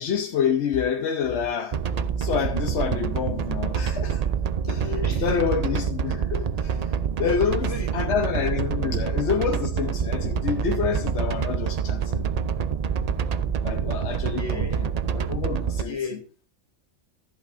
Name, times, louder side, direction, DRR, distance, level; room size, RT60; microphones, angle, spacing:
voice 1, 0.0-1.8 2.2-4.2 4.7-4.9 5.2-6.9 7.2-12.2 13.6-14.7 15.1-15.9, left 7 dB, 70° left, 1.0 m, -27 dB
sound 1, 1.7-15.8, right 7 dB, 60° right, 0.4 m, -26 dB
voice 2, 4.7-5.5 6.1-6.3 7.2-8.2 8.7-9.0 14.3-14.9 15.8-16.5, left 4 dB, 30° left, 2.4 m, -36 dB
14.5 x 8.2 x 2.5 m
omnidirectional pair, 1.3 m